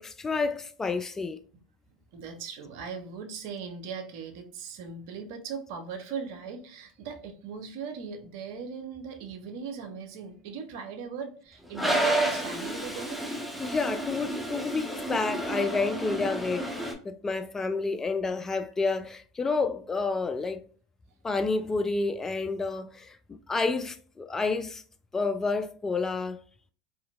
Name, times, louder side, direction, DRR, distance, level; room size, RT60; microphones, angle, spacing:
voice 1, 0.0-1.4 13.6-16.7 17.0-20.6 21.2-24.8 25.1-26.4, left 4 dB, 20° left, 0.3 m, -29 dB
voice 2, 1.9-13.4, right 6 dB, 65° right, 0.6 m, -39 dB
Toilet flush, 11.7-16.9, right 1 dB, 5° right, 0.7 m, -30 dB
2.8 x 2.6 x 2.2 m
hypercardioid pair, 85°, 2 cm